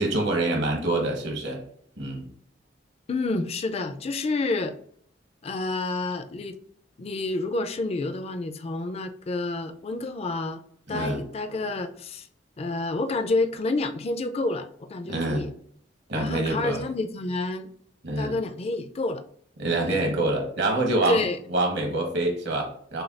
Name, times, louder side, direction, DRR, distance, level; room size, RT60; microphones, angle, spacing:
voice 1, 0.0-1.6 2.0-2.2 10.9-11.2 15.0-15.5 16.1-16.8 18.0-18.3 19.6-21.2 21.5-23.0, right 2 dB, 65° right, 1.1 m, -26 dB
voice 2, 3.1-4.7 5.4-6.6 7.0-10.6 10.9-12.3 12.6-15.5 16.1-17.7 18.2-19.2 19.8-20.0 21.1-21.4, left 2 dB, 35° left, 0.4 m, -29 dB
6.5 x 2.3 x 2.5 m
head